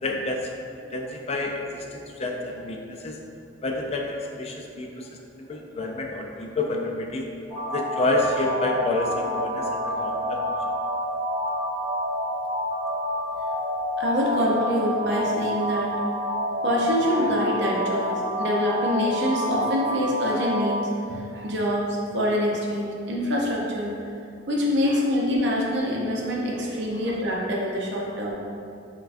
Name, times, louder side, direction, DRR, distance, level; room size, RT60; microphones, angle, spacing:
voice 1, 0.0-0.5 0.9-3.2 3.6-5.1 5.3-7.3 7.7-10.4 26.9-27.1, left 2 dB, 35° left, 1 dB, 0.3 m, -29 dB
sound 1, 7.5-20.7, equal, 20° right, 1.5 m, -28 dB
voice 2, 14.0-15.9 16.6-23.9 24.5-28.3, equal, 65° right, -3 dB, 0.6 m, -25 dB
5.6 x 2.2 x 2.5 m, 2.5 s
head